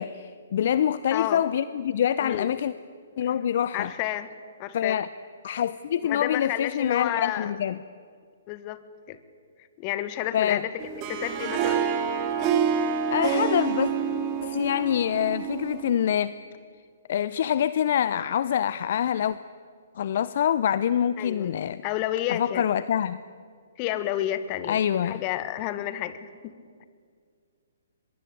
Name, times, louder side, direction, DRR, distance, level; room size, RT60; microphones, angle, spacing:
voice 1, 0.0-2.7 3.2-3.9 4.7-5.1 5.4-7.8 10.3-10.6 13.1-13.9 14.4-16.3 17.1-19.4 20.0-21.8 22.3-23.2 24.7-25.2, left 9 dB, 50° left, 16 dB, 0.6 m, -25 dB
voice 2, 1.1-1.4 2.2-2.5 3.7-4.3 4.6-5.0 6.0-7.5 8.5-8.8 9.1-9.2 9.8-11.9 21.2-21.5 21.8-22.6 23.8-26.3, left 13 dB, 30° left, 13 dB, 1.6 m, -30 dB
Harp, 10.8-16.0, right 7 dB, 30° right, 2.6 m, -27 dB
24.0 x 21.5 x 8.6 m, 2.1 s
figure-of-eight pair, 130°, 0 cm